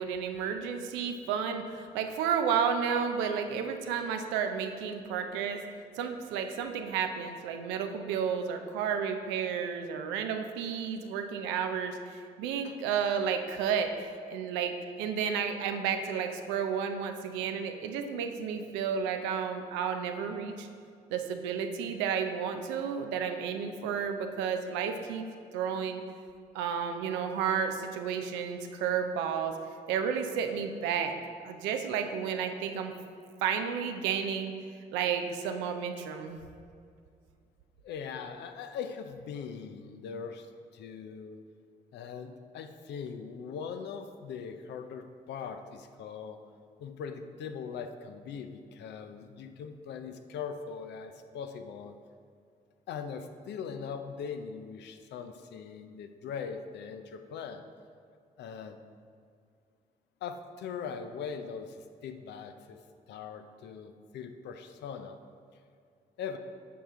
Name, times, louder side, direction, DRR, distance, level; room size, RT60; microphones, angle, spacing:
voice 1, 0.0-5.6 6.0-20.7 21.1-25.2 25.5-26.0 26.5-29.5 29.9-31.1 31.4-32.9 33.4-34.5 34.9-36.4, right 7 dB, 85° right, 6 dB, 0.6 m, -32 dB
voice 2, 37.8-40.5 40.7-41.4 41.9-46.4 46.8-51.9 52.9-57.6 58.4-58.8 60.2-62.8 63.1-65.2 66.2-66.4, left 6 dB, 70° left, 7 dB, 0.6 m, -41 dB
8.4 x 5.6 x 3.7 m, 2.3 s
hypercardioid pair, 50°, 18 cm